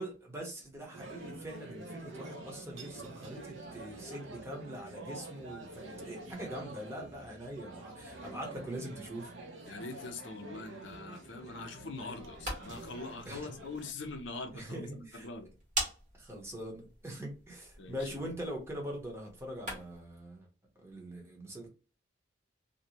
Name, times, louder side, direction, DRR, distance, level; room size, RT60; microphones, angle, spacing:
voice 1, 0.0-9.3 13.2-13.5 14.5-15.3 16.2-20.5 20.8-21.7, equal, 15° right, 0.7 m, -43 dB
sound 1, 0.9-13.9, right 2 dB, 70° right, 0.5 m, -47 dB
voice 2, 9.7-15.5 17.8-18.2, left 3 dB, 65° left, 0.5 m, -43 dB
sound 2, 12.1-20.1, right 1 dB, 40° right, 1.2 m, -44 dB
2.5 x 2.0 x 2.8 m
head